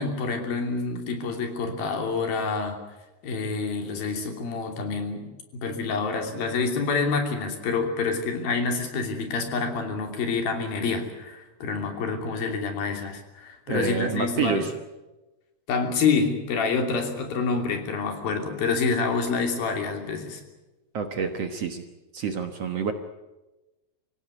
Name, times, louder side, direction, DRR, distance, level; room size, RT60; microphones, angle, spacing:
voice 1, 0.0-2.8 3.2-5.3 5.5-14.7 15.7-20.4, left 4 dB, 80° left, 4 dB, 4.8 m, -27 dB
voice 2, 13.7-14.7 20.9-21.8 22.1-22.9, right 6 dB, 55° right, 6 dB, 2.0 m, -28 dB
25.5 x 16.5 x 9.7 m, 1.1 s
omnidirectional pair, 4.2 m